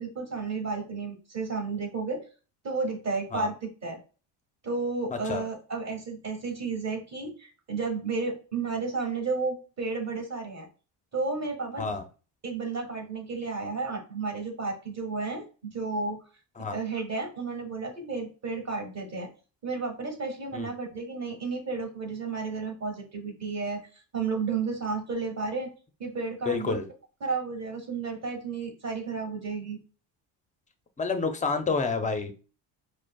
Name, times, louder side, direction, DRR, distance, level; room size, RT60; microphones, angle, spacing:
voice 1, 0.0-2.2 2.6-4.0 4.6-10.7 11.1-11.9 12.4-16.2 16.7-19.3 19.6-23.8 24.1-25.7 26.0-26.8 27.2-29.8, right 4 dB, 35° right, 1 dB, 1.3 m, -32 dB
voice 2, 26.5-26.8 31.0-32.4, left 4 dB, 20° left, 7 dB, 0.4 m, -29 dB
4.9 x 2.1 x 2.2 m, 0.35 s
cardioid pair, 100°, 45 cm